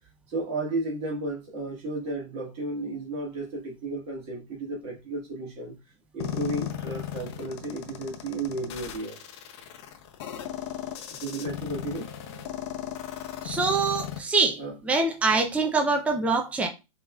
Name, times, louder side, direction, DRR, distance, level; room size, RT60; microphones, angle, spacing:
voice 1, 0.3-5.8 6.1-9.2 11.1-12.1 14.6-15.0, right 2 dB, 35° right, 1.9 m, -33 dB
sound 1, 6.2-14.2, left 11 dB, 50° left, 0.8 m, -36 dB
voice 2, 13.4-14.6 14.9-16.7, right 3 dB, 5° right, 0.6 m, -24 dB
5.0 x 3.1 x 2.4 m
hypercardioid pair, 125°, 18 cm